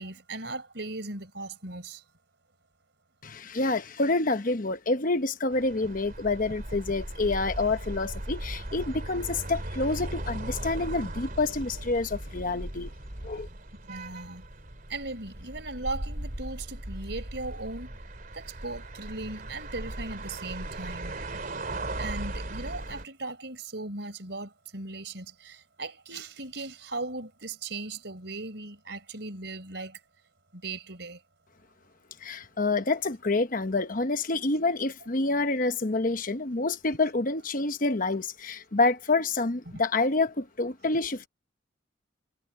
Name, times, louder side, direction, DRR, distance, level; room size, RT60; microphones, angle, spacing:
voice 1, 0.0-2.0 13.9-14.4 14.9-17.9 18.3-21.1 22.0-30.0 30.5-31.2, right 2 dB, 65° right, 5.1 m, -38 dB
voice 2, 3.2-12.9 13.2-13.5 32.2-41.3, left 3 dB, 45° left, 1.0 m, -28 dB
sound 1, 5.5-23.0, right 1 dB, 45° right, 3.0 m, -38 dB
head